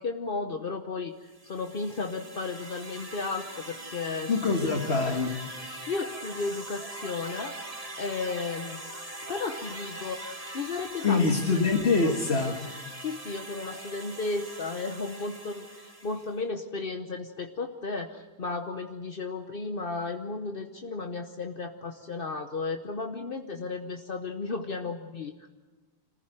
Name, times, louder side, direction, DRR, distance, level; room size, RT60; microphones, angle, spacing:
voice 1, 0.0-4.3 4.6-4.9 5.9-7.6 8.0-8.8 9.3-11.6 12.0-12.1 13.0-25.5, left 3 dB, 60° left, 5 dB, 1.2 m, -34 dB
sound 1, 1.3-16.4, right 1 dB, 35° right, 3.2 m, -42 dB
voice 2, 4.3-5.3 11.0-12.6, left 4 dB, 90° left, 1 dB, 1.9 m, -24 dB
26.0 x 15.5 x 9.1 m, 1.2 s
omnidirectional pair, 1.0 m